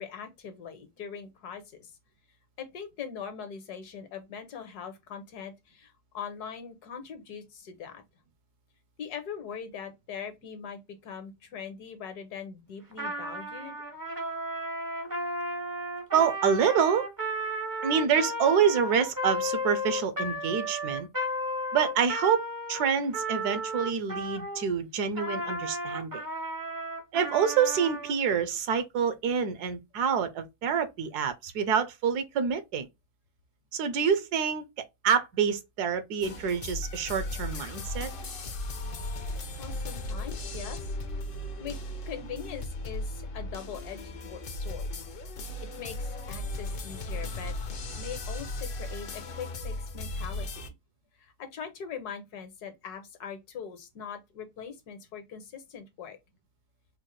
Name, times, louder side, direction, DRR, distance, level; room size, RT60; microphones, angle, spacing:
voice 1, 0.0-1.9 2.6-8.0 9.0-13.8 39.6-40.9 41.6-41.8 42.1-44.9 45.6-47.5 48.0-50.6 51.2-56.2, left 7 dB, 75° left, 1.4 m, -41 dB
Trumpet, 12.9-24.7 25.1-28.1, equal, 25° right, 0.4 m, -34 dB
voice 2, 16.1-17.1 17.8-21.1 21.7-26.2 27.1-32.9 33.7-34.7 35.0-38.1, right 7 dB, 80° right, 1.2 m, -27 dB
sound 1, 36.2-50.7, left 1 dB, 60° left, 0.5 m, -36 dB
4.5 x 2.1 x 3.0 m
omnidirectional pair, 1.7 m